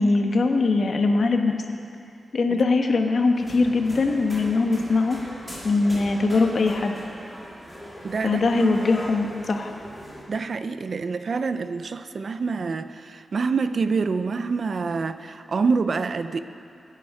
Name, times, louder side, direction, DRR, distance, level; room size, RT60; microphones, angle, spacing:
voice 1, 0.0-1.5 2.3-5.2 5.6-7.0 8.2-9.7, left 3 dB, 50° left, 4 dB, 1.2 m, -21 dB
sound 1, 3.3-10.2, equal, ahead, 2.5 m, -40 dB
voice 2, 8.0-8.4 10.3-16.4, right 4 dB, 45° right, 11 dB, 0.5 m, -26 dB
24.0 x 10.5 x 4.9 m, 2.5 s
wide cardioid pair, 170°, 0 cm